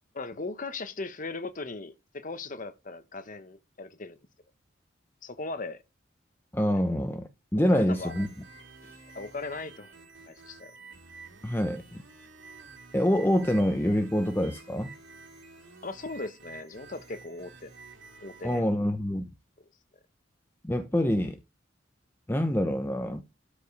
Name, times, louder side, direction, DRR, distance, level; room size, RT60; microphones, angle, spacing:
voice 1, 0.1-4.2 5.2-5.8 7.7-8.2 9.1-9.9 10.3-10.7 15.8-17.7 18.2-18.7, left 3 dB, 45° left, 1.0 m, -38 dB
voice 2, 6.5-8.3 8.8-8.9 11.4-12.0 12.9-14.9 18.4-19.3 20.6-21.4 22.3-23.2, equal, 10° left, 0.8 m, -26 dB
sound 1, 7.9-18.6, right 4 dB, 85° right, 3.1 m, -50 dB
13.0 x 5.3 x 5.3 m
head